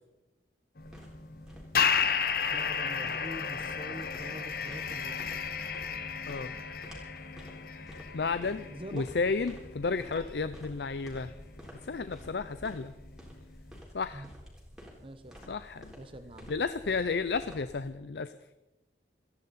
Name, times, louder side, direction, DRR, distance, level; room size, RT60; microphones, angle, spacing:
sound 1, 0.8-13.7, left 6 dB, 55° left, 0.9 m, -34 dB
sound 2, 0.8-17.9, equal, 5° right, 4.0 m, -51 dB
voice 1, 2.2-5.5 8.7-9.1 14.1-14.3 15.0-15.5 15.9-16.5, right 1 dB, 30° right, 8 dB, 1.0 m, -45 dB
voice 2, 8.1-11.3 11.8-12.9 13.9-14.3 15.5-15.9 16.5-18.3, left 4 dB, 70° left, 12 dB, 0.5 m, -32 dB
28.0 x 10.5 x 4.2 m, 0.99 s
head